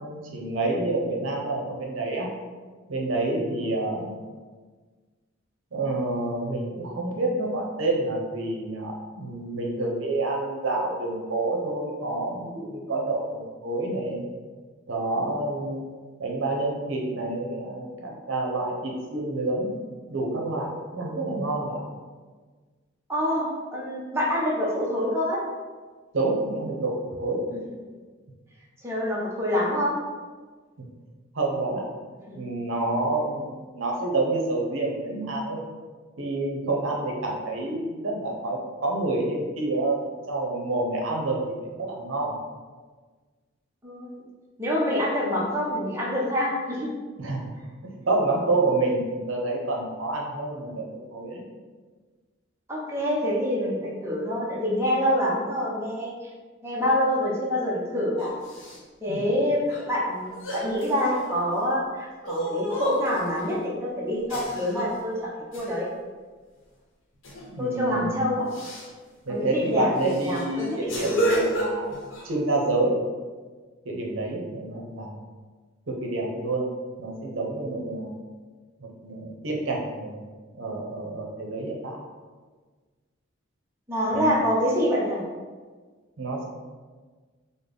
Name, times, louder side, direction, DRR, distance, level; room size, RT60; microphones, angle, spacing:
voice 1, 0.0-2.3 2.9-4.2 5.7-14.3 14.9-15.9 16.2-19.7 20.1-21.8 26.1-27.4 30.8-30.9 31.3-31.9 32.3-35.6 36.2-42.3 47.2-47.5 48.1-51.4 59.1-59.3 67.5-68.3 69.3-72.0 72.2-73.0 73.8-75.1 75.9-76.7 77.0-78.2 78.8-80.2 80.5-82.0 84.1-84.4 86.2-86.4, right 2 dB, 75° right, -1 dB, 0.6 m, -28 dB
voice 2, 23.1-25.4 27.5-27.6 28.8-30.0 32.3-32.4 43.8-44.2 44.6-46.9 52.7-56.1 56.6-58.3 59.0-65.9 67.6-68.5 69.3-71.2 83.9-85.2, equal, 15° right, -5 dB, 0.5 m, -26 dB
sound 1, 58.2-58.8 59.7-59.8 60.3-61.7 62.2-63.4 64.3-65.0 65.5-65.9 67.2-67.5 67.8-68.0 68.5-68.9 69.5-69.6 70.0-72.3, right 1 dB, 80° left, 0.8 m, -31 dB
3.8 x 2.0 x 3.3 m, 1.4 s
head